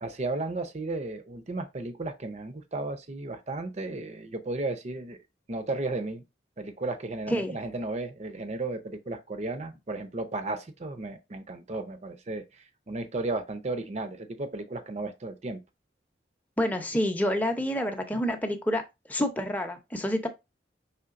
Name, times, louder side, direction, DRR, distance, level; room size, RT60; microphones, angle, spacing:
voice 1, 0.0-5.2 5.5-6.2 6.6-15.6, right 2 dB, 40° right, 0.6 m, -34 dB
voice 2, 16.6-18.8 19.1-20.3, equal, 10° left, 0.7 m, -28 dB
5.7 x 3.5 x 2.5 m
head